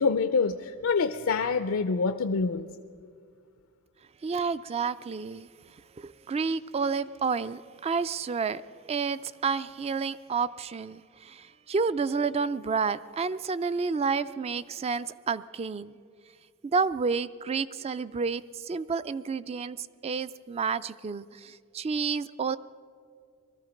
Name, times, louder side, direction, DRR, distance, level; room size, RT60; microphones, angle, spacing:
voice 1, 0.0-2.7, left 4 dB, 70° left, 9 dB, 0.5 m, -26 dB
voice 2, 4.2-5.5 6.0-8.6 8.9-16.0 16.7-22.6, right 5 dB, 30° right, 16 dB, 0.3 m, -30 dB
20.0 x 13.5 x 5.2 m, 2.2 s
head